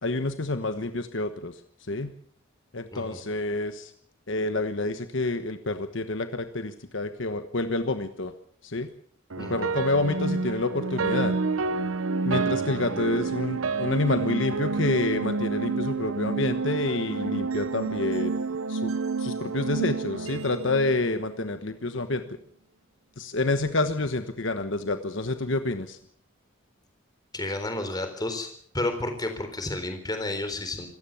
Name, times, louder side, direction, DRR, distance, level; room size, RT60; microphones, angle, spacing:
voice 1, 0.0-1.6 1.9-2.1 2.7-3.9 4.3-8.3 8.6-8.9 9.4-11.4 12.2-18.9 19.2-22.4 23.2-26.0, left 2 dB, 65° left, 8 dB, 1.3 m, -28 dB
sound 1, 9.3-21.6, right 4 dB, 85° right, 1.0 m, -29 dB
voice 2, 27.3-28.5 28.7-30.9, left 2 dB, 20° left, 7 dB, 3.9 m, -31 dB
26.0 x 15.0 x 7.1 m, 0.63 s
head